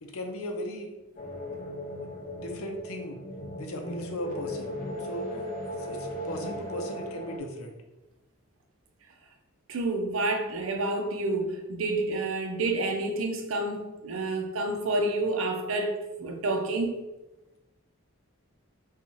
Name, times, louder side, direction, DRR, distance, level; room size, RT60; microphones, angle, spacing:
voice 1, 0.0-0.9 2.4-3.2 3.6-5.3 5.8-7.7, left 1 dB, 85° left, 0.6 m, -37 dB
sound 1, 1.2-7.4, equal, 40° left, 0.5 m, -37 dB
voice 2, 9.7-17.0, right 2 dB, 75° right, 0.5 m, -29 dB
4.5 x 2.3 x 2.7 m
head